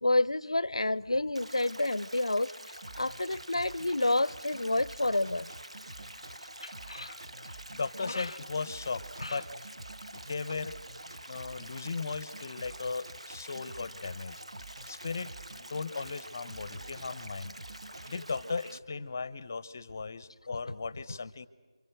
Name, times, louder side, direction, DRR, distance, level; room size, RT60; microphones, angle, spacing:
voice 1, 0.0-5.5 6.6-7.2 8.0-8.3 9.2-9.4, left 2 dB, 65° left, 0.7 m, -29 dB
Stream, 1.3-18.8, right 1 dB, 75° right, 1.1 m, -47 dB
sound 1, 2.8-18.4, right 2 dB, 40° right, 1.5 m, -50 dB
voice 2, 7.7-9.5 10.1-10.8 11.3-14.4 14.9-15.3 15.6-17.5 18.1-21.5, left 4 dB, 25° left, 0.8 m, -37 dB
29.0 x 25.5 x 6.5 m
figure-of-eight pair, 165°, 3 cm